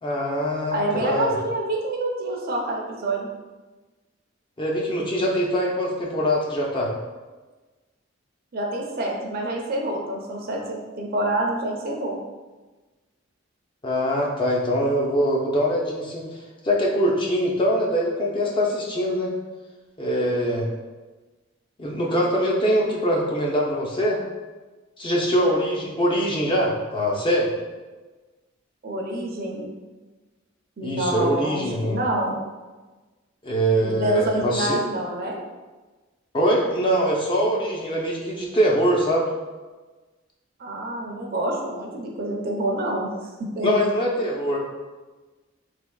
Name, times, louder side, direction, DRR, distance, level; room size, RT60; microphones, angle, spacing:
voice 1, 0.0-1.3 4.6-6.9 13.8-16.2 16.6-19.3 20.0-20.7 21.8-24.2 25.0-27.5 30.8-32.0 33.4-34.8 36.3-39.3 43.6-44.6, equal, 25° left, -2 dB, 0.5 m, -23 dB
voice 2, 0.7-3.3 8.5-12.2 28.8-29.7 30.8-32.4 33.8-35.4 40.6-43.7, right 1 dB, 50° right, 0 dB, 0.5 m, -27 dB
3.4 x 3.3 x 2.3 m, 1.2 s
head